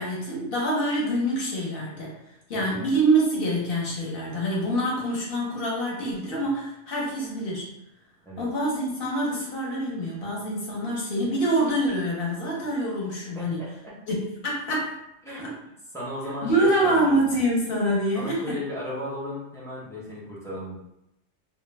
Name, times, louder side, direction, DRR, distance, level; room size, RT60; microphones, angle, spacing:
voice 1, 0.0-2.1 2.5-7.7 8.4-13.6 14.1-14.9 15.4-15.5 16.4-18.4, right 1 dB, 55° left, -4 dB, 0.8 m, -25 dB
voice 2, 13.4-14.0 15.2-15.4 15.9-17.0 18.1-20.8, left 1 dB, 5° left, -7 dB, 0.3 m, -35 dB
2.2 x 2.1 x 3.2 m, 0.85 s
omnidirectional pair, 1.3 m